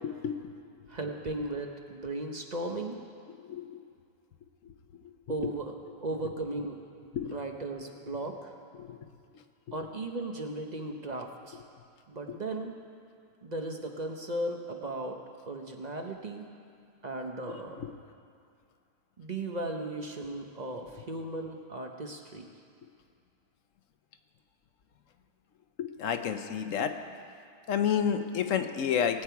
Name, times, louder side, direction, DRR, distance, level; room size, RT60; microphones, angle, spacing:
voice 1, 0.9-3.0 5.3-5.7 6.0-6.8 7.3-8.5 9.7-11.6 12.1-12.7 13.4-15.2 15.5-16.5 17.0-17.8 19.2-22.5, right 2 dB, 40° right, 3 dB, 0.8 m, -36 dB
voice 2, 3.4-3.8 7.1-7.3 8.8-9.0 25.8-26.9 27.7-29.2, left 8 dB, 80° left, 8 dB, 1.1 m, -29 dB
19.0 x 8.8 x 4.7 m, 2.4 s
omnidirectional pair, 1.3 m